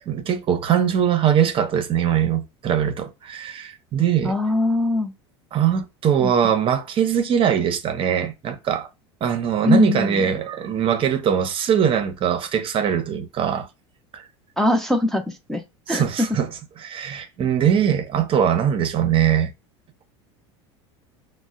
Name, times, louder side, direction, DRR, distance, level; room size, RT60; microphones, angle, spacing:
voice 1, 0.1-4.3 5.5-8.9 9.2-13.7 14.1-14.2 15.9-16.5 16.8-19.5, right 9 dB, 40° right, 0.7 m, -21 dB
voice 2, 4.2-5.1 6.2-6.3 9.6-10.2 14.6-15.2 15.5-15.6 15.9-16.0 16.3-16.4, left 2 dB, 5° left, 0.5 m, -21 dB
5.2 x 2.1 x 2.5 m
supercardioid pair, 100°, 14 cm